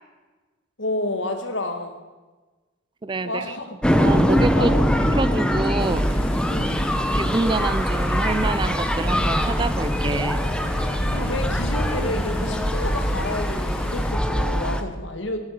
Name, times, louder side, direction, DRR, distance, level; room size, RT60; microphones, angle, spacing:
voice 1, 0.8-2.0 3.2-3.7 4.5-5.0 5.3-5.7 6.5-6.9 11.1-15.4, left 1 dB, 70° left, 6 dB, 1.8 m, -30 dB
voice 2, 3.0-3.6 3.9-4.7 5.2-6.0 7.1-10.4, right 3 dB, 25° right, 14 dB, 0.4 m, -27 dB
sound 1, 3.8-14.8, equal, 5° left, 0.8 m, -22 dB
sound 2, 5.8-14.1, left 1 dB, 30° left, 1.7 m, -36 dB
18.5 x 8.6 x 7.0 m, 1.3 s
head